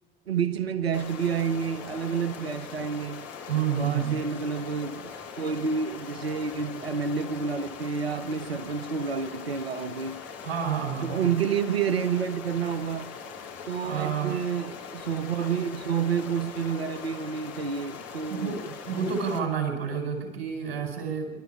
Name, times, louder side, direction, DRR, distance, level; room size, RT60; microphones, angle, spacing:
voice 1, 0.3-3.3 3.7-10.2 11.1-13.1 13.7-18.6, right 6 dB, 90° right, 0.8 m, -29 dB
Stream, 0.9-19.4, left 6 dB, 55° left, 2.7 m, -41 dB
voice 2, 3.5-4.2 10.4-11.3 13.8-14.3 18.3-21.3, right 7 dB, 70° right, 5.0 m, -29 dB
24.5 x 12.5 x 8.6 m
figure-of-eight pair, 60°, 30 cm